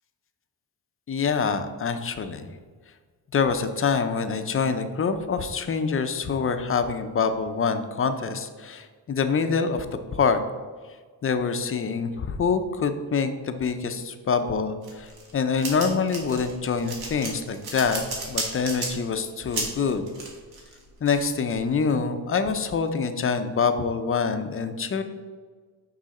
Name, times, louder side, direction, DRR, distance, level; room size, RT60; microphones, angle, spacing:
voice 1, 1.1-2.5 3.3-9.9 10.1-10.4 11.2-20.1 21.0-25.0, left 5 dB, 35° left, 8 dB, 0.6 m, -25 dB
sound 1, 14.8-22.0, right 3 dB, 75° right, 1.7 m, -34 dB
6.3 x 5.6 x 4.2 m, 1.5 s
cardioid pair, 110°, 38 cm